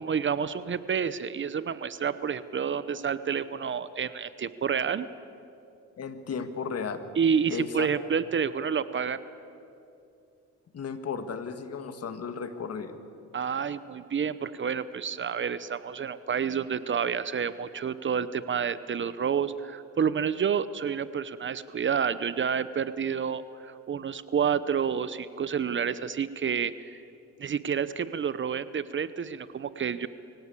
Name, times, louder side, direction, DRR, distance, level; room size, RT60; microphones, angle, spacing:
voice 1, 0.0-5.1 7.2-9.2 13.3-27.0 27.4-30.1, right 7 dB, 40° right, 15 dB, 0.8 m, -29 dB
voice 2, 6.0-7.0 7.5-7.9 10.7-13.0, left 6 dB, 55° left, 9 dB, 1.8 m, -34 dB
23.5 x 17.0 x 8.4 m, 2.6 s
cardioid pair, 90°, 30 cm